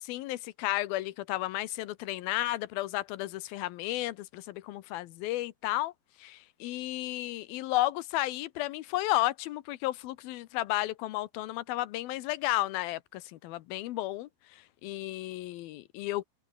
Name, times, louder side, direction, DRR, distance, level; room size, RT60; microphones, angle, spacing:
voice 1, 0.0-5.9 6.2-16.2, left 16 dB, 85° left, 2.7 m, -33 dB
omnidirectional pair, 4.3 m